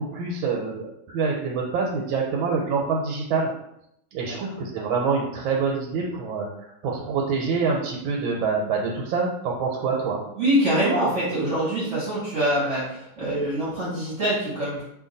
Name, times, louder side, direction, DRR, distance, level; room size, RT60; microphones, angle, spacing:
voice 1, 0.0-3.5 4.1-10.2, right 5 dB, 85° right, -1 dB, 1.4 m, -26 dB
voice 2, 4.3-4.6 10.3-14.8, right 1 dB, 45° right, -8 dB, 1.0 m, -24 dB
2.8 x 2.7 x 3.8 m, 0.77 s
omnidirectional pair, 2.2 m